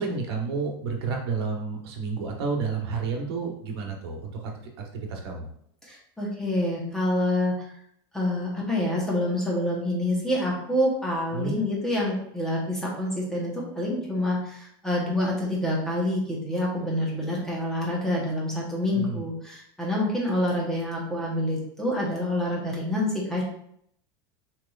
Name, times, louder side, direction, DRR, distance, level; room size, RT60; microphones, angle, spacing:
voice 1, 0.0-4.5 4.8-5.5 11.3-11.6 18.9-19.2, right 4 dB, 85° right, 1 dB, 1.2 m, -30 dB
voice 2, 5.8-7.7 8.1-23.4, left 1 dB, 5° left, -4 dB, 0.9 m, -27 dB
6.5 x 3.3 x 2.4 m, 0.69 s
supercardioid pair, 175°, 13 cm